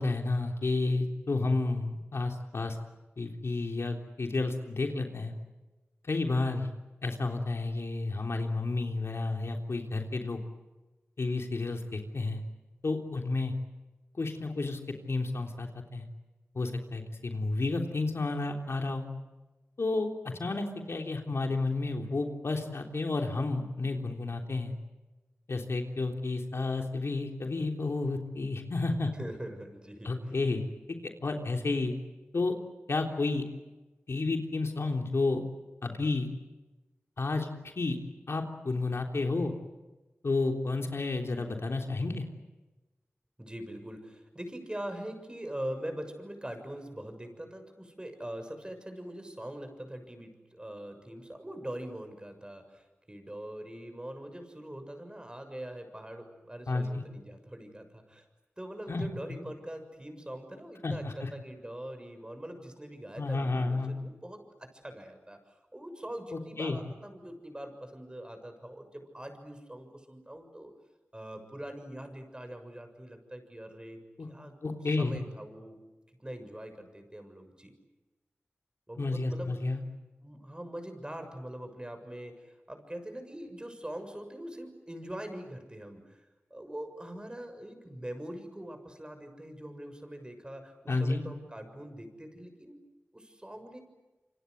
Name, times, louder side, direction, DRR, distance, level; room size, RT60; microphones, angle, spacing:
voice 1, 0.0-2.8 3.2-5.3 6.1-6.7 7.0-10.4 11.2-12.4 12.8-13.5 14.2-14.8 15.1-16.1 16.6-19.1 19.8-24.7 25.5-29.1 30.0-30.6 31.0-31.9 32.3-32.5 32.9-33.4 34.1-35.4 35.8-36.3 37.2-37.5 37.8-38.0 38.3-39.5 40.2-42.2 56.7-57.0 58.9-59.0 60.8-61.3 63.2-63.9 66.3-66.8 74.2-74.3 74.6-75.2 79.0-79.8 90.9-91.2, left 3 dB, 75° left, 3 dB, 3.4 m, -31 dB
voice 2, 29.2-30.4 43.4-58.2 58.6-70.7 71.1-74.0 74.3-74.6 75.0-75.8 76.2-77.7 78.9-79.6 80.2-86.2 86.5-92.8 93.1-93.8, right 1 dB, 20° right, 7 dB, 6.9 m, -43 dB
27.5 x 25.5 x 8.1 m, 1.1 s
cardioid pair, 45°, 4 cm